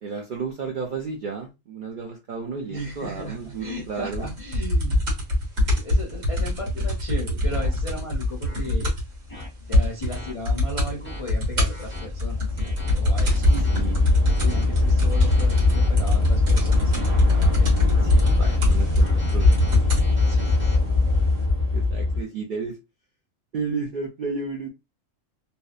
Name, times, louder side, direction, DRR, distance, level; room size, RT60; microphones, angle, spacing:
voice 1, 0.0-4.3 13.2-14.0 18.0-19.6 21.7-22.8 23.5-24.7, right 5 dB, 65° right, 0.5 m, -33 dB
voice 2, 2.7-5.0 5.8-8.9 9.3-12.6 12.9-13.9 14.4-17.8 20.2-20.6, left 1 dB, 55° left, 0.3 m, -36 dB
sound 1, 4.1-9.1 9.4-9.5 9.7-10.2 10.4-10.9 11.3-20.1 20.9-21.0, left 1 dB, 85° right, 1.4 m, -23 dB
sound 2, 6.7-6.9 7.6-7.7 8.4-8.6 9.3-9.5 10.1-10.3 10.8-11.2 11.7-12.1 12.6-12.9 13.4-13.8 14.3-14.7 15.1-15.9 16.5-17.2 17.9-18.6 19.0-20.8, left 1 dB, 10° left, 0.6 m, -39 dB
Train / Subway metro underground, 8.2-8.3 9.1-9.4 9.6-22.2, left 3 dB, 20° right, 0.8 m, -22 dB
2.7 x 2.1 x 2.3 m
omnidirectional pair, 1.3 m